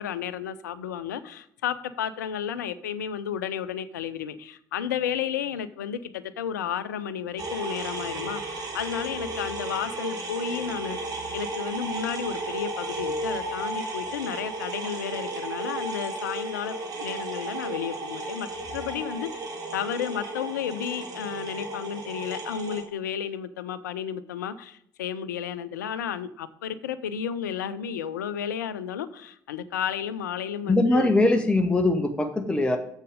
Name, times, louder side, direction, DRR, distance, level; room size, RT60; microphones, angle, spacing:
voice 1, 0.0-18.5 18.7-31.4, left 8 dB, 75° left, 0.5 m, -32 dB
sound 1, 7.4-22.8, right 2 dB, 40° right, 2.0 m, -34 dB
voice 2, 30.7-32.8, left 2 dB, 10° left, 1.0 m, -21 dB
7.2 x 6.6 x 5.0 m
figure-of-eight pair, 50°, 10 cm